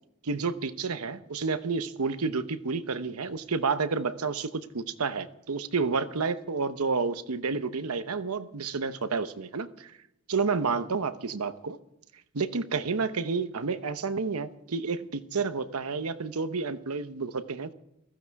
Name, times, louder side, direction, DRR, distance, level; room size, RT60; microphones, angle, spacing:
voice 1, 0.2-9.9 10.3-11.8 12.3-17.7, right 4 dB, 90° right, 0.9 m, -30 dB
15.5 x 15.0 x 4.7 m
head